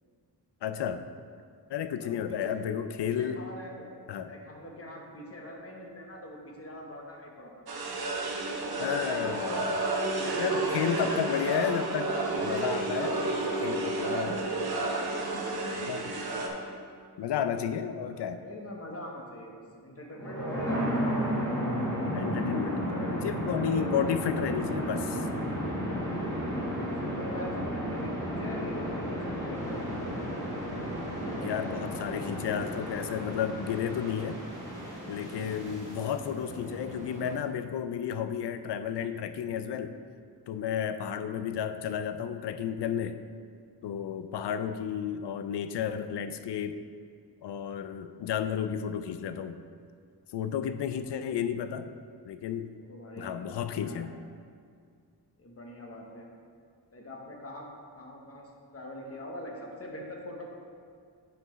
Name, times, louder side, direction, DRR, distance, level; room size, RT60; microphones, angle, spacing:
voice 1, 0.6-1.1 1.7-3.4 4.1-4.3 8.8-9.8 10.4-12.1 12.4-14.5 15.8-16.1 17.2-18.4 22.1-25.3 31.4-34.4 35.1-39.9 40.5-43.2 43.8-46.8 47.4-49.6 50.3-51.9 52.3-52.7 53.2-54.1, left 8 dB, 85° left, 9 dB, 0.5 m, -32 dB
voice 2, 2.0-2.5 3.0-3.9 4.2-7.6 10.1-11.0 18.0-21.2 23.6-24.1 27.0-30.1 31.2-31.6 52.8-54.1 55.4-56.3 56.9-57.7 57.9-60.5, left 1 dB, 35° left, 0 dB, 1.0 m, -43 dB
sound 1, 7.7-16.5, right 2 dB, 65° right, 1.0 m, -31 dB
sound 2, 20.1-36.0, equal, 10° left, 1.3 m, -33 dB
Walking to the beach, 29.5-37.4, right 1 dB, 15° right, 0.9 m, -43 dB
9.4 x 5.7 x 3.1 m, 2.2 s
wide cardioid pair, 175°, 40 cm